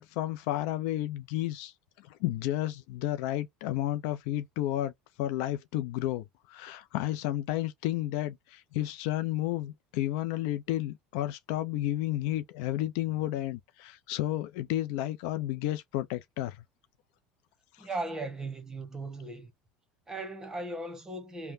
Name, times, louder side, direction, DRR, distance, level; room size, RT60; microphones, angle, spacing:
voice 1, 0.0-1.7 2.0-4.9 5.2-16.6 17.8-17.9, left 14 dB, 75° left, 0.4 m, -32 dB
voice 2, 17.8-19.5 20.1-21.5, right 2 dB, 15° right, 1.1 m, -37 dB
3.2 x 2.1 x 2.6 m
supercardioid pair, 100°, 4 cm